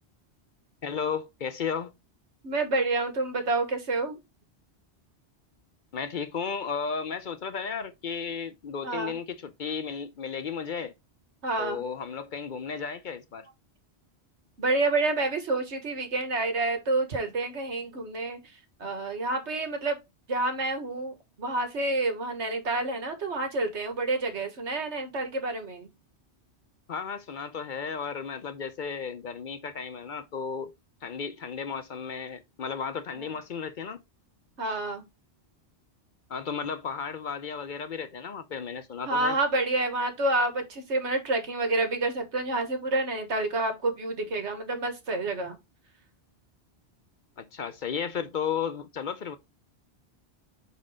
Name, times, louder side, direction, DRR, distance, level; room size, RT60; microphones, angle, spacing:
voice 1, 0.8-1.9 5.9-10.9 11.6-13.5 26.9-30.7 31.0-34.0 34.6-34.8 36.3-39.4 47.4-49.4, left 6 dB, 55° left, 0.7 m, -34 dB
voice 2, 2.4-4.2 8.8-9.1 11.4-11.8 14.6-18.4 18.8-20.0 20.3-25.9 34.6-35.0 39.1-45.6, right 2 dB, 85° right, 1.8 m, -28 dB
5.3 x 4.1 x 4.9 m
omnidirectional pair, 1.1 m